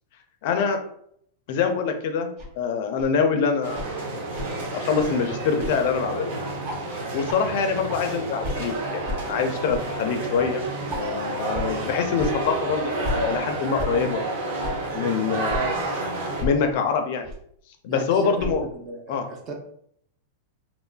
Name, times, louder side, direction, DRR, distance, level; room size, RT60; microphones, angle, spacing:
voice 1, 0.4-0.8 1.5-4.0 4.7-6.3 7.1-10.6 10.9-14.2 14.9-15.7 16.4-17.3 17.8-18.7 19.1-19.3, left 6 dB, 60° left, 6 dB, 0.4 m, -25 dB
sound 1, 2.4-2.5 3.0-3.1 3.7-3.9 4.3-4.5 5.0-5.1 5.6-5.7 6.1-6.2 6.6-6.8 7.3-7.4 7.9-8.0 8.4-8.6 9.0-9.2 9.7-9.8 10.3-10.4 10.9-11.0 11.5-11.7 12.2-12.3 13.0-13.2 13.8-13.9 14.6-14.7 15.5-15.6 16.4-16.5 17.2-17.4 18.4-18.6, left 1 dB, 55° right, 1.1 m, -31 dB
sound 2, 3.6-16.4, right 2 dB, 70° right, 0.9 m, -30 dB
voice 2, 17.9-19.5, right 3 dB, 35° right, 1 dB, 0.7 m, -34 dB
2.9 x 2.3 x 2.2 m, 0.68 s
hypercardioid pair, 125°, 0 cm